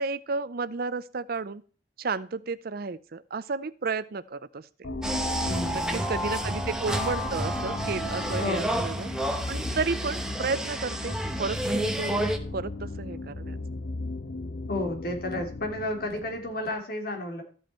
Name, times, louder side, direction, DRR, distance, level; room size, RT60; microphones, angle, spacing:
voice 1, 0.0-1.6 2.0-4.7 5.7-9.1 9.5-13.8, right 4 dB, 55° right, 16 dB, 0.6 m, -32 dB
sound 1, 4.8-16.7, left 2 dB, 75° left, 1.0 m, -37 dB
sound 2, 5.0-12.4, right 1 dB, 5° right, 1.1 m, -30 dB
voice 2, 5.4-6.0 8.4-8.8 14.7-17.4, left 1 dB, 55° left, 3 dB, 2.9 m, -32 dB
13.5 x 7.7 x 4.4 m, 0.41 s
head